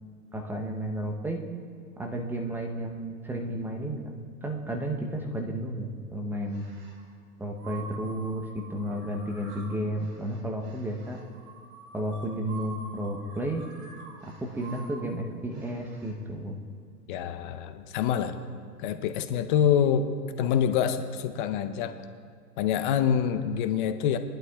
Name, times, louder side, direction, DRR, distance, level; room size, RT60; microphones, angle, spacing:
voice 1, 0.3-1.4 2.0-4.1 4.4-6.6 7.4-11.2 11.9-13.6 14.2-16.6, right 1 dB, 5° right, 1 dB, 0.7 m, -32 dB
sound 1, 6.4-7.0 7.6-16.2, right 3 dB, 35° right, 2.3 m, -47 dB
voice 2, 17.1-18.4 18.8-20.1 20.4-22.0 22.6-24.2, left 8 dB, 30° left, 10 dB, 0.6 m, -26 dB
20.5 x 11.5 x 2.3 m, 2.2 s
hypercardioid pair, 120°, 49 cm